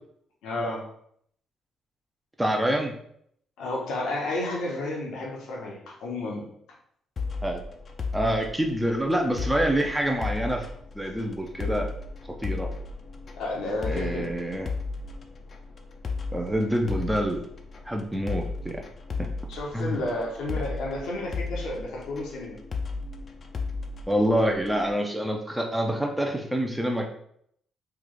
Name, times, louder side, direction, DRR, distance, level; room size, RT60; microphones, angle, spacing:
voice 1, 0.4-0.9 3.6-6.5 13.3-14.3 19.5-22.6, left 2 dB, 85° left, -3 dB, 0.9 m, -31 dB
voice 2, 2.4-2.9 7.4-7.6 8.1-10.7 10.9-11.9 12.4-12.7 13.9-14.7 16.3-17.4 17.9-18.8 19.2-19.3 19.7-20.0 24.1-27.1, right 1 dB, 5° right, 1 dB, 0.5 m, -26 dB
sound 1, 7.2-24.9, left 4 dB, 45° left, 0.5 m, -35 dB
3.3 x 2.4 x 3.8 m, 0.68 s
cardioid pair, 90°, 0 cm